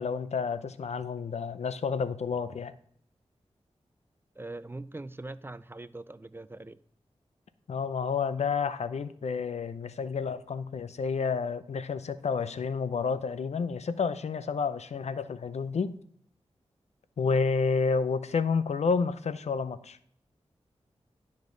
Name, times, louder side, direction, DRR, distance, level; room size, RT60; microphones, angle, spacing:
voice 1, 0.0-2.7 7.7-15.9 17.2-20.0, left 5 dB, 80° left, 0.6 m, -30 dB
voice 2, 4.4-6.8, right 2 dB, 20° right, 0.4 m, -42 dB
11.5 x 5.3 x 3.9 m
wide cardioid pair, 70°, 11 cm